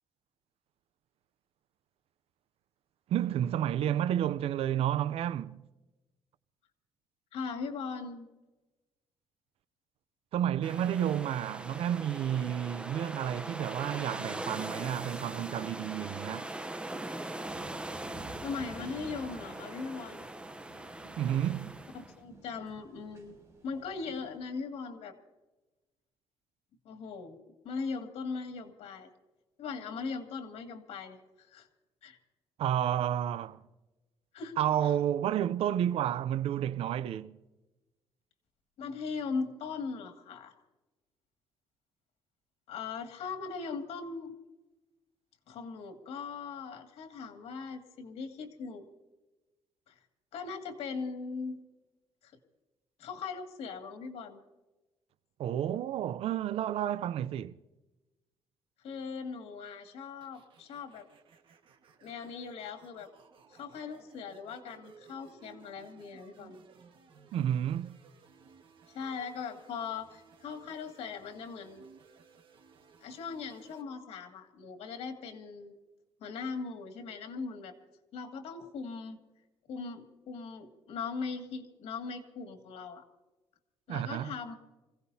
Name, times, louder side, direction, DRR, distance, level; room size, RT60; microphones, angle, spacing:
voice 1, 3.1-5.6 10.3-16.5 21.2-21.7 32.6-33.6 34.6-37.4 55.4-57.6 67.3-68.0 83.9-84.3, right 10 dB, 75° right, 0.6 m, -31 dB
voice 2, 7.3-8.3 18.4-20.3 22.2-23.4 23.6-25.2 26.8-27.4 27.6-29.1 29.6-31.7 32.0-32.2 34.3-34.9 38.8-40.5 42.7-44.3 45.5-48.9 49.9-50.0 50.3-51.6 52.2-52.3 53.0-54.4 58.8-61.1 62.0-63.1 63.5-66.6 68.9-71.9 73.0-75.8 76.2-77.8 78.1-79.2 79.7-83.1 83.9-84.5, left 5 dB, 90° left, 2.3 m, -39 dB
sound 1, 10.6-22.1, right 1 dB, 10° right, 0.8 m, -41 dB
sound 2, 17.4-24.4, right 2 dB, 30° right, 7.4 m, -51 dB
sound 3, 60.2-73.8, right 6 dB, 60° right, 1.6 m, -59 dB
27.0 x 17.0 x 2.8 m
cardioid pair, 145°, 10 cm